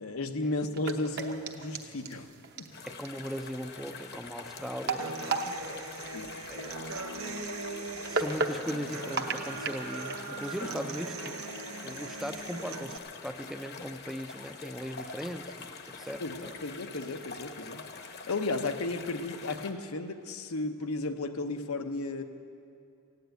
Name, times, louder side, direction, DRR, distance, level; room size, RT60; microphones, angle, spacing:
voice 1, 0.0-2.3 2.6-2.7 6.1-6.3 16.2-22.2, left 2 dB, 80° left, 7 dB, 0.9 m, -34 dB
sound 1, 0.6-11.3, right 3 dB, 50° right, 0.9 m, -37 dB
sound 2, 2.7-19.7, left 4 dB, 45° left, 1.0 m, -45 dB
voice 2, 2.8-6.1 6.5-7.2 8.0-11.3 11.8-16.2, equal, ahead, 7 dB, 0.4 m, -39 dB
Human voice / Acoustic guitar, 5.0-13.0, right 3 dB, 75° right, 0.9 m, -40 dB
16.0 x 9.6 x 9.1 m, 2.5 s
head